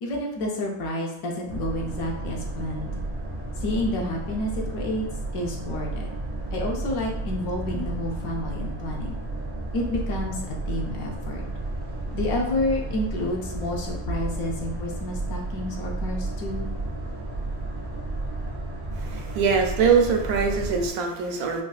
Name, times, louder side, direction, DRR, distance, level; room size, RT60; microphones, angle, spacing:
voice 1, 0.0-2.9 3.6-5.0 5.3-6.1 6.5-9.2 9.7-11.4 12.1-16.7, left 1 dB, 75° left, 0 dB, 1.1 m, -29 dB
Boat Water vehicle, 1.5-20.9, right 2 dB, 35° right, 0.4 m, -32 dB
voice 2, 19.0-21.6, right 5 dB, 85° right, 3 dB, 1.1 m, -23 dB
4.0 x 2.3 x 2.3 m, 0.82 s
omnidirectional pair, 1.5 m